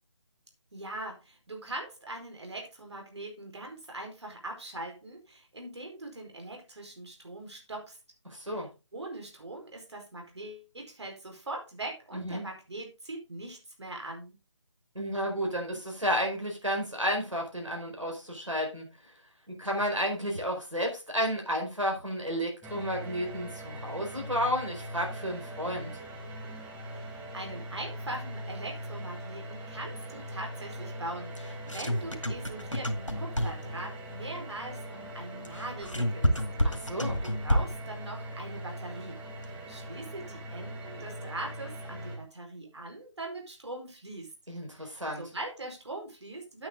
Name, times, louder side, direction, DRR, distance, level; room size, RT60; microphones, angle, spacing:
voice 1, 0.7-8.0 8.4-8.7 8.9-14.4 26.9-36.4 36.9-44.3 44.8-46.7, right 2 dB, 65° right, 2 dB, 4.8 m, -41 dB
voice 2, 8.3-8.7 12.1-12.4 14.9-18.9 19.6-25.9 36.6-37.2 44.5-45.2, equal, 90° right, 1 dB, 4.8 m, -32 dB
sound 1, 22.6-42.2, equal, 10° right, 1.3 m, -41 dB
sound 2, 31.4-33.8 35.5-37.9, equal, 90° left, 2.1 m, -29 dB
9.2 x 8.8 x 3.8 m, 0.28 s
figure-of-eight pair, 150°, 16 cm